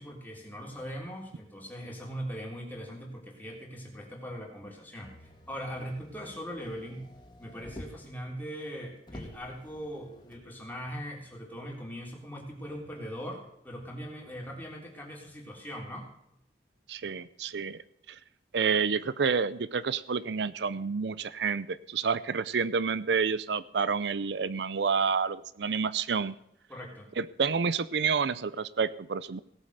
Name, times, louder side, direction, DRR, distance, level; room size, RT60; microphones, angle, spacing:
voice 1, 0.0-7.1 7.4-16.1 26.7-27.1, equal, 10° left, -1 dB, 3.4 m, -40 dB
Motor vehicle (road), 5.0-8.2 8.7-8.8 9.0-10.5 11.3-11.4, left 1 dB, 25° left, 2.0 m, -49 dB
voice 2, 16.9-17.8 18.1-18.2 18.5-26.3 27.2-29.4, right 5 dB, 75° right, 17 dB, 0.5 m, -29 dB
17.5 x 8.3 x 6.6 m, 0.78 s
head